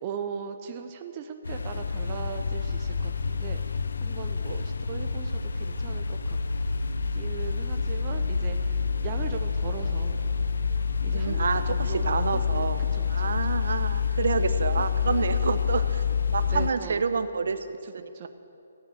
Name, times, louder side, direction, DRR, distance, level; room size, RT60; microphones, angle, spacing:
voice 1, 0.0-6.4 7.1-10.2 11.0-14.0 14.8-15.4 16.5-17.1 17.8-18.3, right 7 dB, 25° right, 5 dB, 0.7 m, -39 dB
sound 1, 1.4-16.7, left 5 dB, 90° left, 0.7 m, -28 dB
voice 2, 11.1-12.8 13.1-18.3, right 5 dB, 65° right, 10 dB, 0.8 m, -29 dB
14.5 x 9.2 x 8.3 m, 2.7 s
hypercardioid pair, 170°, 0 cm